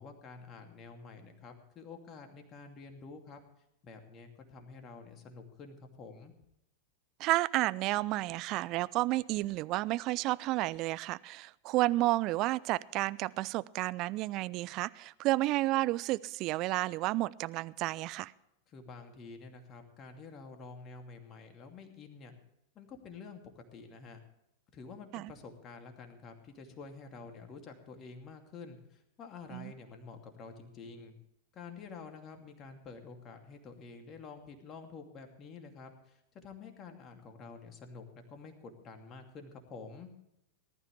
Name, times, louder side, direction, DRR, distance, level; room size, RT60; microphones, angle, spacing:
voice 1, 0.0-3.4 3.8-6.3 18.7-22.3 22.7-24.2 24.7-31.1 31.5-40.1, left 4 dB, 30° left, 5 dB, 2.6 m, -49 dB
voice 2, 7.2-18.3 25.1-25.3 29.5-29.7, right 18 dB, 40° right, 19 dB, 0.4 m, -31 dB
19.5 x 12.5 x 3.3 m, 0.81 s
figure-of-eight pair, 90°, 0 cm